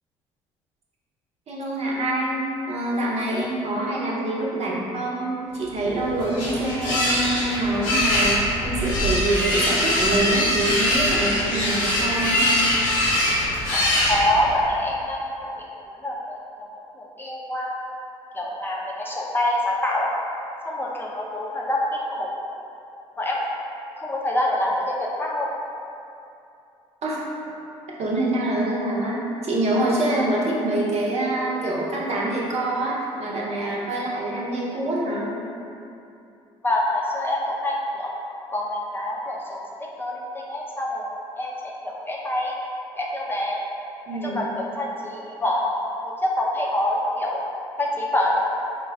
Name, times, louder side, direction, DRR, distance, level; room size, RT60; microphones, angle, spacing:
voice 1, 1.5-12.4 27.0-27.2 28.0-35.3 44.1-44.5, right 1 dB, 50° right, -4 dB, 0.8 m, -25 dB
sound 1, 5.8-14.7, left 1 dB, 75° left, 0.9 m, -23 dB
voice 2, 14.1-17.8 18.3-20.1 20.7-22.3 23.2-23.4 24.0-25.5 36.6-38.1 38.5-42.5 43.0-43.6 44.2-45.8 46.2-47.4 47.8-48.4, left 1 dB, 15° left, -4 dB, 0.6 m, -26 dB
4.0 x 2.2 x 3.4 m, 2.7 s
hypercardioid pair, 60°, 14 cm